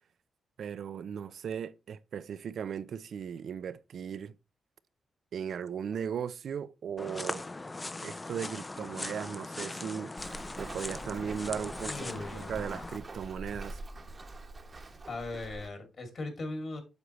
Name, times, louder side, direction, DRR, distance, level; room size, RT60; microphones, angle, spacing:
voice 1, 0.6-4.3 5.3-7.4 8.0-13.8, right 7 dB, 70° right, 0.5 m, -37 dB
sound 1, 7.0-13.0, left 2 dB, 25° left, 0.5 m, -40 dB
Walk footsteps, 10.2-15.7, right 2 dB, 35° right, 1.1 m, -45 dB
voice 2, 11.9-12.6 15.1-16.8, left 2 dB, 55° left, 2.7 m, -38 dB
8.0 x 6.6 x 3.1 m
cardioid pair, 85°, 0 cm